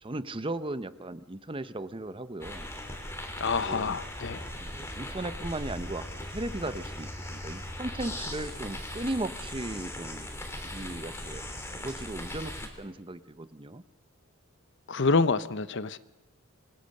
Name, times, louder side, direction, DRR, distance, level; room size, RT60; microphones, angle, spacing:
voice 1, 0.0-2.7 3.5-3.9 4.6-10.3 10.6-11.4 11.7-13.8, right 2 dB, 25° right, 13 dB, 0.8 m, -37 dB
sound 1, 2.4-12.7, left 1 dB, 10° left, 3.6 m, -39 dB
voice 2, 3.4-4.4 14.9-16.0, left 4 dB, 60° left, 14 dB, 0.8 m, -27 dB
26.5 x 24.0 x 6.6 m, 0.94 s
head